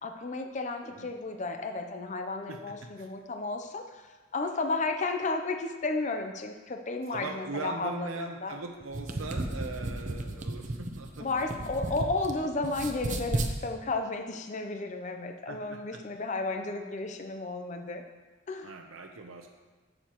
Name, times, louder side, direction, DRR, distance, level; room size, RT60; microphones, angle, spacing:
voice 1, 0.0-8.5 11.2-18.0 18.5-18.7, left 3 dB, 35° left, 5 dB, 0.6 m, -33 dB
voice 2, 2.5-3.1 7.1-12.0 12.3-12.5 15.5-16.0 18.6-19.5, right 3 dB, 85° right, 3 dB, 0.8 m, -41 dB
sound 1, 8.8-12.3 12.6-13.5, right 2 dB, 35° right, 0.7 m, -33 dB
14.5 x 6.5 x 3.0 m, 1.3 s
head